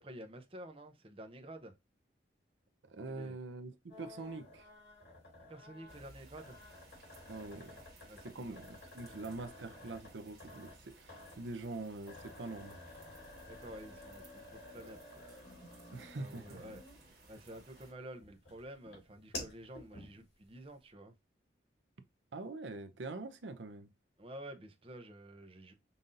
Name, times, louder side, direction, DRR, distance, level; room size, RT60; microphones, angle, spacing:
voice 1, 0.0-1.7 3.1-3.4 5.5-6.6 8.1-8.6 9.2-9.4 13.5-15.3 16.1-21.1 24.2-25.7, right 1 dB, 30° right, 0.6 m, -50 dB
voice 2, 2.9-4.7 7.3-7.7 8.2-12.8 15.9-16.6 22.3-23.9, right 3 dB, 85° right, 0.6 m, -44 dB
sound 1, 3.9-17.2 17.7-20.4, left 2 dB, 85° left, 2.2 m, -52 dB
sound 2, 5.9-17.9, right 2 dB, 55° right, 1.5 m, -60 dB
5.4 x 2.7 x 2.5 m
head